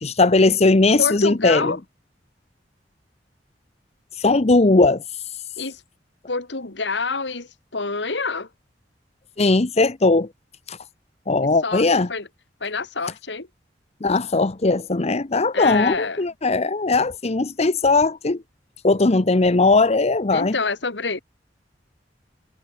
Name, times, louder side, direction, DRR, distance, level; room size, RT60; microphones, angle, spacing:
voice 1, 0.0-1.7 4.2-5.0 9.4-10.3 10.7-10.8 11.3-12.1 14.0-18.4 18.8-20.5, left 3 dB, 35° left, 0.8 m, -18 dB
voice 2, 1.0-1.8 5.6-5.8 6.3-8.5 11.6-12.3 12.6-13.5 15.5-16.2 20.3-21.2, left 4 dB, 90° left, 2.3 m, -27 dB
head